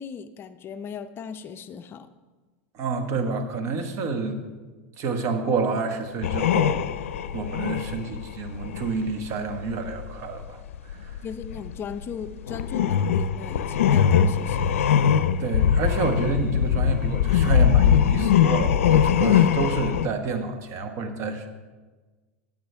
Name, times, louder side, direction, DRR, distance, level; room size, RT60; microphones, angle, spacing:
voice 1, 0.0-2.1 11.2-15.0, left 6 dB, 35° left, 10 dB, 0.5 m, -37 dB
voice 2, 2.7-4.4 5.0-6.9 7.3-10.6 10.9-11.2 15.4-21.5, right 4 dB, 45° right, 6 dB, 1.4 m, -28 dB
sound 1, 6.2-10.1 10.4-20.1, left 9 dB, 85° left, 0.5 m, -21 dB
13.5 x 8.8 x 3.4 m, 1.3 s
hypercardioid pair, 115°, 7 cm